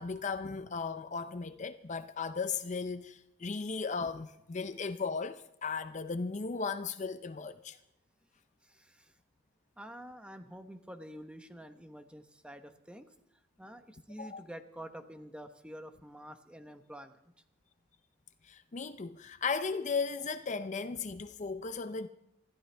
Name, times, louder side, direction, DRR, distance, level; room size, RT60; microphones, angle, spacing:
voice 1, 0.0-7.8 14.2-14.4 18.5-22.1, left 5 dB, 40° left, 0.6 m, -36 dB
voice 2, 8.6-9.1 9.8-13.1 13.6-17.2, equal, 5° right, 1.0 m, -48 dB
26.0 x 14.0 x 3.4 m
head